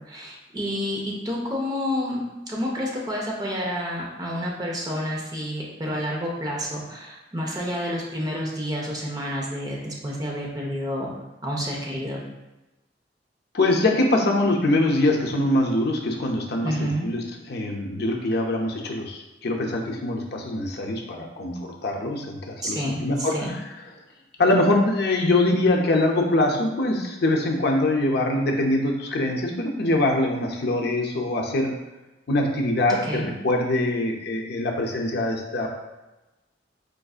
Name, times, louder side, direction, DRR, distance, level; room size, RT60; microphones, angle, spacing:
voice 1, 0.0-11.1 11.4-12.2 16.6-17.1 22.6-23.5 32.9-33.3, equal, 20° right, -3 dB, 0.7 m, -29 dB
voice 2, 13.5-17.2 17.5-23.6 24.4-31.7 32.3-35.7, left 2 dB, 60° left, 0 dB, 0.6 m, -23 dB
4.6 x 2.6 x 2.4 m, 1.0 s
head